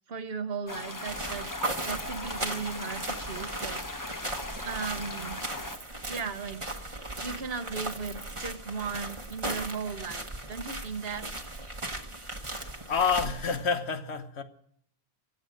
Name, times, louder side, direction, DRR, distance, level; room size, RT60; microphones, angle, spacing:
voice 1, 0.1-1.5 1.9-3.8 4.6-5.4 6.1-6.6 7.2-11.2, right 5 dB, 65° right, 1.3 m, -36 dB
sound 1, 0.7-5.8, left 2 dB, 20° left, 0.9 m, -39 dB
sound 2, 1.1-13.6, right 2 dB, 30° right, 1.2 m, -37 dB
voice 2, 12.5-14.4, left 6 dB, 90° left, 1.4 m, -29 dB
24.0 x 8.1 x 6.4 m
omnidirectional pair, 1.1 m